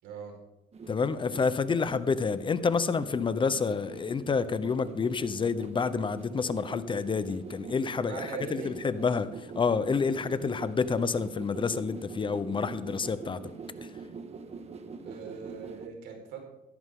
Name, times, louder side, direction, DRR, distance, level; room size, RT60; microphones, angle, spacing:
voice 1, 0.0-0.4 8.0-8.8 15.0-16.4, right 5 dB, 90° right, 2 dB, 4.9 m, -40 dB
sound 1, 0.7-15.9, right 4 dB, 40° right, 1.6 m, -44 dB
voice 2, 0.9-13.4, left 5 dB, 30° left, 14 dB, 0.9 m, -29 dB
16.5 x 14.0 x 3.8 m, 0.96 s
cardioid pair, 110°, 17 cm